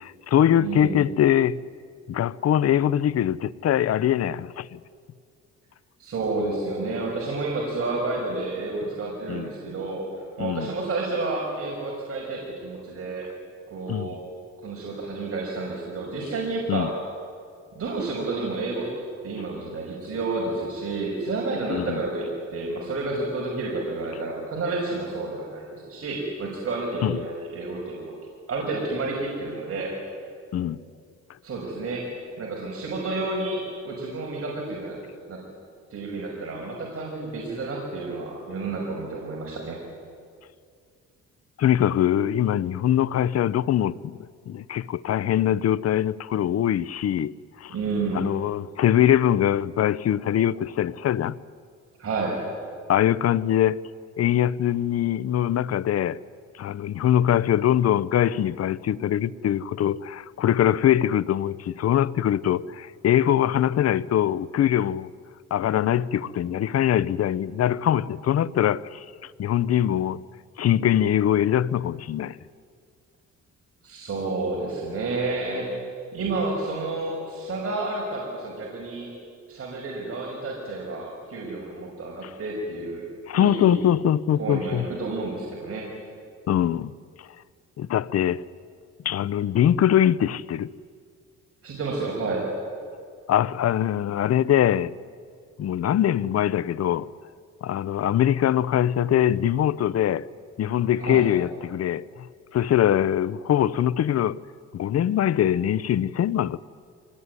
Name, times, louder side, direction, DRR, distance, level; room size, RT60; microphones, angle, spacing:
voice 1, 0.0-1.6 2.1-4.8 9.3-9.5 10.4-10.7 13.9-14.2 16.7-16.9 21.7-22.0 27.0-27.2 30.5-30.8 41.6-44.2 44.5-47.7 48.1-51.3 52.9-53.8 54.2-56.2 56.6-65.1 65.5-70.2 70.6-72.4 83.3-84.9 86.5-86.9 87.2-87.3 87.8-88.5 89.0-90.7 93.3-94.9 95.6-97.1 97.6-100.3 100.6-102.1 102.5-104.4 104.7-106.6, left 10 dB, 55° left, 0.7 m, -22 dB
voice 2, 0.6-1.0 6.0-13.3 13.7-14.2 14.6-16.9 17.7-18.9 19.2-28.1 28.5-29.9 31.4-32.0 32.4-35.0 35.3-35.4 35.9-39.8 47.7-48.2 52.0-52.4 73.8-75.7 76.1-79.1 79.5-83.0 83.3-83.8 84.4-85.8 91.6-92.4 101.0-101.2, right 3 dB, 50° right, 5.8 m, -30 dB
24.5 x 19.5 x 9.8 m
cardioid pair, 90°, 30 cm